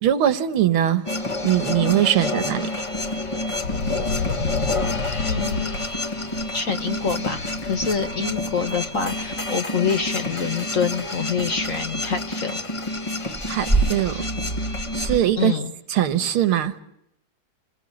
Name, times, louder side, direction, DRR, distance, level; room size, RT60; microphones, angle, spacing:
voice 1, 0.0-1.2 1.4-2.7 13.5-14.3 14.9-15.6 15.9-16.8, right 11 dB, 80° right, 2.1 m, -21 dB
sound 1, 1.1-15.2, left 1 dB, 15° left, 1.4 m, -27 dB
sound 2, 2.7-9.5 9.8-9.9 11.0-11.1 11.4-11.6, left 4 dB, 80° left, 2.5 m, -32 dB
voice 2, 5.2-5.7 6.5-12.6 15.4-15.7, left 6 dB, 45° left, 1.5 m, -26 dB
28.0 x 22.5 x 8.6 m
omnidirectional pair, 2.3 m